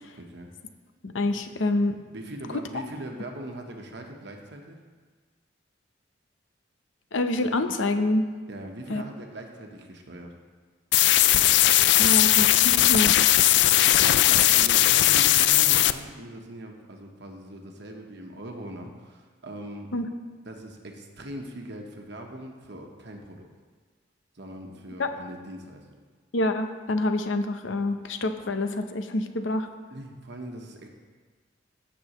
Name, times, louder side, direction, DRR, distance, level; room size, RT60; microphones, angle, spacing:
voice 1, 0.2-0.5 2.1-4.8 8.5-10.3 13.5-19.9 20.4-23.5 24.3-25.8 29.9-30.9, right 1 dB, 60° right, 2 dB, 1.1 m, -41 dB
voice 2, 1.0-2.0 7.1-8.3 8.9-9.0 12.0-13.2 19.9-20.1 25.0-25.1 26.3-29.7, left 2 dB, 80° left, 7 dB, 0.7 m, -26 dB
sound 1, 10.9-15.9, left 14 dB, 65° left, 0.3 m, -18 dB
16.5 x 6.1 x 3.1 m, 1.4 s
head